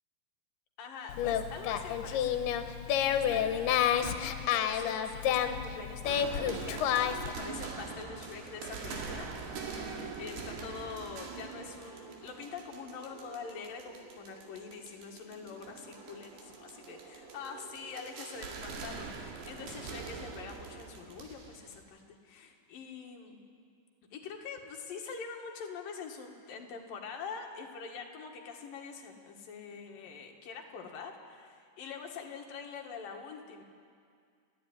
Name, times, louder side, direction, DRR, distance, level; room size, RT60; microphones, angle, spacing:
voice 1, 0.8-2.4 2.9-9.3 9.7-9.9 10.2-23.4 24.1-33.6, left 5 dB, 65° left, 1 dB, 3.4 m, -45 dB
Singing, 1.1-7.3, left 9 dB, 90° left, 3.0 m, -30 dB
sound 1, 6.1-21.8, right 4 dB, 80° right, 4.1 m, -44 dB
30.0 x 11.0 x 9.9 m, 2.2 s
omnidirectional pair, 4.5 m